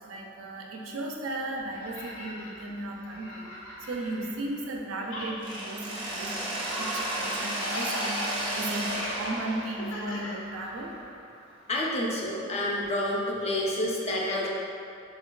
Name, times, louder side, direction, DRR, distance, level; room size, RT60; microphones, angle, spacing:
voice 1, 0.0-3.5 3.9-8.2 8.5-10.9, right 2 dB, 85° right, 0 dB, 0.4 m, -35 dB
sound 1, 1.6-4.8 5.0-11.0, left 1 dB, 85° left, 0.5 m, -40 dB
Mechanisms, 5.4-11.3, right 1 dB, 25° right, 0.5 m, -34 dB
voice 2, 11.7-14.5, left 1 dB, 30° left, -3 dB, 0.4 m, -29 dB
4.1 x 2.3 x 2.2 m, 2.4 s
head